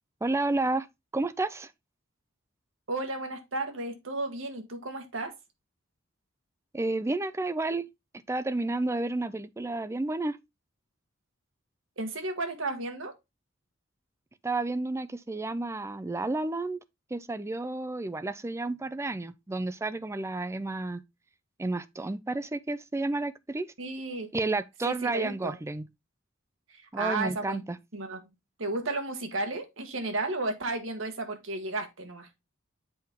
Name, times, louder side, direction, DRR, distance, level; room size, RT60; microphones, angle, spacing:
voice 1, 0.2-0.9 1.1-1.7 6.7-7.8 8.3-10.4 14.4-16.8 17.1-21.0 21.6-23.7 24.3-25.8 26.9-27.8, right 2 dB, 15° right, 0.4 m, -31 dB
voice 2, 2.9-5.3 12.0-13.1 23.8-24.3 24.8-25.6 26.7-27.6 27.9-28.2 28.6-32.3, right 2 dB, 80° right, 1.4 m, -33 dB
7.7 x 4.4 x 3.6 m
head